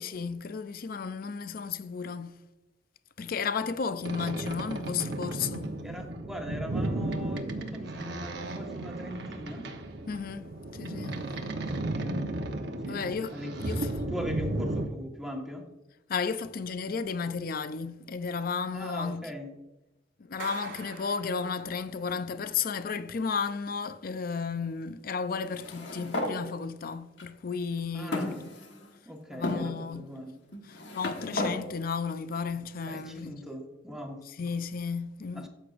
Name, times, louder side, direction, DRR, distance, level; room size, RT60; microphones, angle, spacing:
voice 1, 0.0-2.4 3.2-5.7 10.1-10.5 10.7-11.4 12.9-13.3 13.6-14.0 16.1-19.3 20.2-28.5 29.3-30.1 30.7-33.4 34.4-35.5, left 5 dB, 55° left, 0.5 m, -33 dB
Boat Water vehicle, 4.0-14.9, right 2 dB, 65° right, 0.9 m, -34 dB
voice 2, 5.8-9.7 10.9-12.2 12.8-13.0 13.3-15.6 18.7-19.5 27.9-28.4 29.0-30.3 32.8-34.2 35.3-35.5, equal, 5° right, 1.4 m, -40 dB
Clapping, 20.4-22.0, right 4 dB, 85° right, 1.4 m, -44 dB
sound 1, 25.5-26.4 27.2-27.3 28.1-28.9 29.4-29.6 30.5-31.6, left 1 dB, 80° left, 1.4 m, -33 dB
13.0 x 7.8 x 2.5 m
head